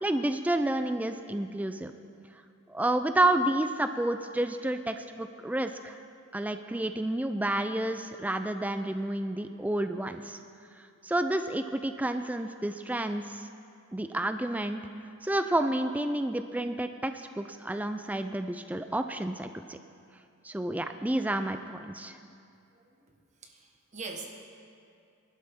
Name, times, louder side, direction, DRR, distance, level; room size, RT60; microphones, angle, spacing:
voice 1, 0.0-1.9 2.7-6.0 6.3-10.4 11.0-13.5 13.9-14.8 15.2-19.8 20.4-22.1, right 1 dB, 5° right, 8 dB, 0.3 m, -30 dB
voice 2, 23.4-24.4, right 3 dB, 35° right, 2 dB, 1.4 m, -42 dB
22.5 x 12.0 x 3.7 m, 2.5 s
head